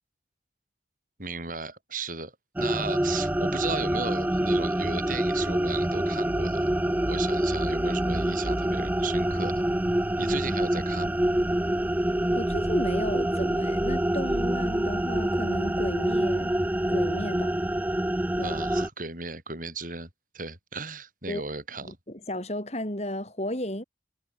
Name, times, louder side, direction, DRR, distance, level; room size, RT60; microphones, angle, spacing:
voice 1, 1.2-6.7 7.1-9.6 10.2-11.2 18.4-20.1 20.3-22.0, right 4 dB, 45° right, 6.5 m, -36 dB
sound 1, 2.6-18.9, right 1 dB, 10° right, 0.4 m, -26 dB
voice 2, 12.3-16.5 16.9-17.6 18.4-18.6 21.3-21.4 21.8-23.8, left 1 dB, 35° left, 4.6 m, -33 dB
head